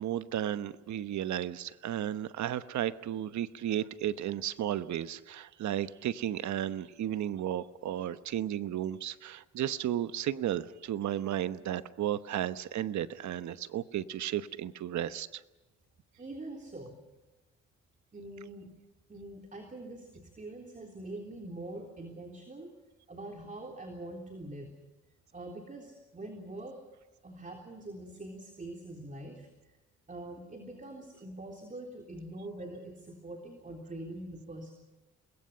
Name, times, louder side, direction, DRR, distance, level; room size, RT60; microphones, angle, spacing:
voice 1, 0.0-15.4, right 11 dB, 70° right, 13 dB, 1.1 m, -34 dB
voice 2, 16.2-17.0 18.1-18.7 19.1-22.7 23.1-24.7 25.3-26.8 27.2-29.5 30.1-34.7, right 1 dB, 25° right, 3 dB, 3.6 m, -44 dB
28.0 x 21.5 x 5.7 m, 1.1 s
cardioid pair, 90°, 30 cm